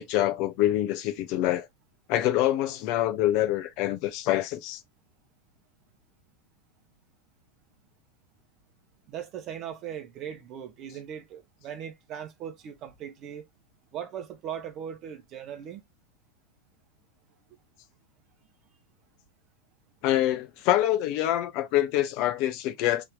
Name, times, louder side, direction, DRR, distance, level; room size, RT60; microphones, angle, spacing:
voice 1, 0.0-1.7 2.1-4.8 20.0-23.0, left 13 dB, 45° left, 0.6 m, -25 dB
voice 2, 9.1-13.4 13.9-15.8, right 9 dB, 35° right, 0.9 m, -39 dB
3.4 x 2.9 x 3.4 m
figure-of-eight pair, 90°, 0 cm